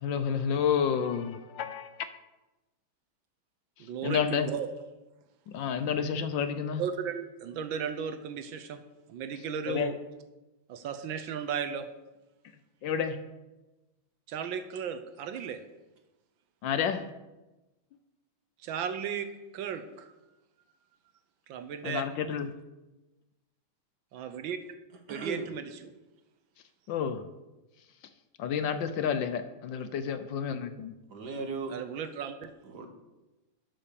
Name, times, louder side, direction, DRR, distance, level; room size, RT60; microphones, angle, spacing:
voice 1, 0.0-2.1 4.0-4.5 5.5-6.8 9.7-9.9 12.8-13.2 16.6-17.0 21.8-22.5 26.9-27.2 28.4-30.9, left 7 dB, 70° left, 1.3 m, -30 dB
voice 2, 3.8-4.7 6.8-8.8 9.1-10.0 10.7-11.9 14.3-15.6 18.6-20.1 21.5-22.1 24.1-24.6 25.1-25.9 31.7-32.5, right 7 dB, 70° right, 1.4 m, -35 dB
voice 3, 25.1-25.5 31.1-31.8 32.7-32.9, right 3 dB, 55° right, 1.8 m, -36 dB
11.5 x 5.9 x 6.8 m
omnidirectional pair, 2.3 m